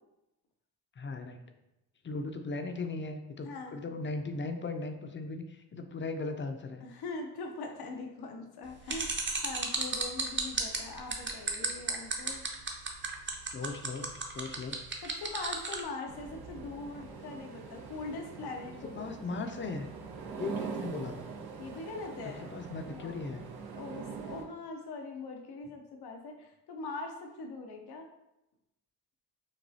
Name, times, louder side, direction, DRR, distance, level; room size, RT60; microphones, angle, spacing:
voice 1, 1.0-1.4 2.0-6.8 13.5-14.8 18.9-19.9 20.4-21.2 22.2-23.5, left 3 dB, 30° left, 6 dB, 0.5 m, -38 dB
voice 2, 3.4-3.8 6.8-12.4 15.0-18.9 21.6-22.6 22.8-23.3 23.7-28.1, left 3 dB, 90° left, 3 dB, 0.7 m, -42 dB
sound 1, 8.9-15.8, right 4 dB, 30° right, 0.7 m, -33 dB
sound 2, 16.1-24.4, right 5 dB, 75° right, 0.8 m, -43 dB
6.1 x 2.3 x 2.7 m, 0.91 s
cardioid pair, 80°, 38 cm